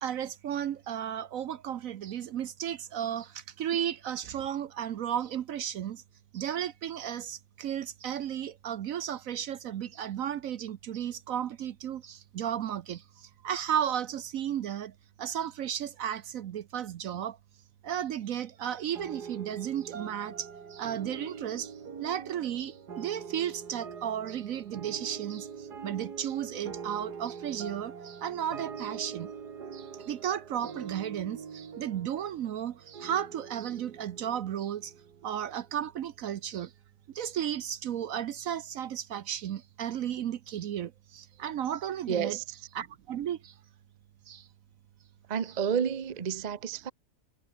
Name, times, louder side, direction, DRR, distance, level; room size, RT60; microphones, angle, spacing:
voice 1, 0.0-6.0 6.3-14.9 15.2-17.4 17.8-29.3 29.7-34.9 35.2-36.7 37.1-42.4 42.7-43.5 44.3-44.5, right 10 dB, 65° right, 1.0 m, -34 dB
sound 1, 18.9-35.7, right 6 dB, 80° right, 2.6 m, -44 dB
voice 2, 42.1-42.4 45.3-46.9, right 7 dB, 35° right, 0.7 m, -30 dB
omnidirectional pair, 1.7 m